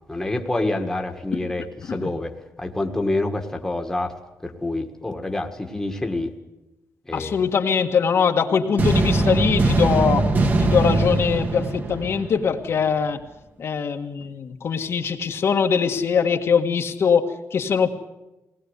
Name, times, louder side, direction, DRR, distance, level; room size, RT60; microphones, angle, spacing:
voice 1, 0.1-4.1 4.4-6.3 7.1-7.4, left 2 dB, 10° left, 3 dB, 1.7 m, -27 dB
voice 2, 7.1-10.3 10.6-13.2 13.6-17.9, left 6 dB, 55° left, 3 dB, 1.7 m, -22 dB
sound 1, 8.8-12.8, right 2 dB, 35° right, 1.7 m, -21 dB
21.5 x 19.0 x 8.1 m, 0.97 s
wide cardioid pair, 165°, 5 cm